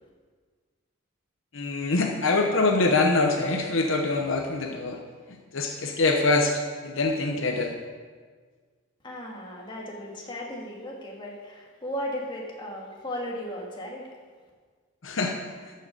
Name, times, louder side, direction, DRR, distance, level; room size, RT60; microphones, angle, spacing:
voice 1, 1.5-5.0 5.5-7.7 15.0-15.3, left 3 dB, 65° left, 2 dB, 0.9 m, -24 dB
voice 2, 9.0-14.1, equal, 20° left, -2 dB, 1.9 m, -36 dB
13.5 x 6.6 x 5.2 m, 1.5 s
head